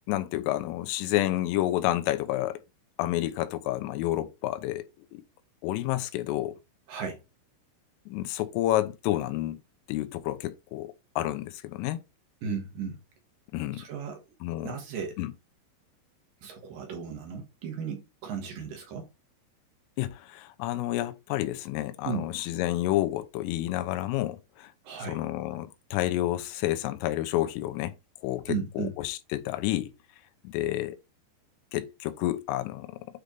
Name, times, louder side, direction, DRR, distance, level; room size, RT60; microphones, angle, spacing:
voice 1, 0.1-2.6 3.0-5.2 5.6-6.6 8.1-9.6 9.9-12.0 13.5-13.9 14.4-14.8 15.2-15.3 20.0-24.7 25.0-28.0 28.2-29.9 30.4-31.0 31.7-33.1, left 15 dB, 85° left, 3.4 m, -30 dB
voice 2, 6.9-7.2 12.4-13.0 13.8-14.2 14.6-15.2 16.4-19.1 22.0-22.2 24.8-25.2 28.5-28.9, right 6 dB, 65° right, 2.3 m, -35 dB
9.5 x 3.4 x 3.7 m
omnidirectional pair, 5.8 m